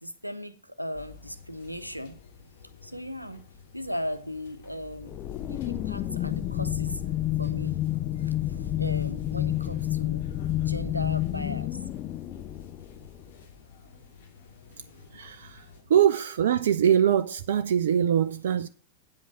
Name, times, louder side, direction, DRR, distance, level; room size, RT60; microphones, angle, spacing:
voice 1, 0.0-2.2 2.8-3.4 3.7-5.1 5.4-7.8 8.2-10.3 10.6-11.8, equal, 90° right, 0.8 m, -37 dB
sound 1, 0.9-15.8, left 5 dB, 60° left, 2.3 m, -51 dB
sound 2, 5.0-13.3, left 13 dB, 35° left, 0.5 m, -29 dB
voice 2, 15.1-15.6 15.9-18.7, right 9 dB, 60° right, 0.4 m, -23 dB
8.8 x 8.1 x 6.2 m
figure-of-eight pair, 90°, 0 cm